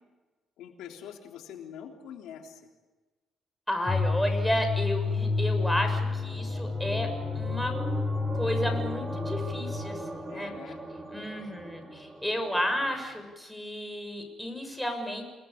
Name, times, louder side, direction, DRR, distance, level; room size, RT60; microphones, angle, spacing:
voice 1, 0.6-2.6 10.3-10.8, left 8 dB, 90° left, 3 dB, 3.5 m, -44 dB
voice 2, 3.7-7.1 7.3-7.7 8.3-10.5 11.1-15.3, equal, 5° left, 5 dB, 6.8 m, -32 dB
sound 1, 3.9-9.8, left 4 dB, 20° left, 6.1 m, -30 dB
sound 2, 5.0-13.3, right 2 dB, 25° right, 5.2 m, -40 dB
29.0 x 20.0 x 8.7 m, 1.2 s
cardioid pair, 90°, 0 cm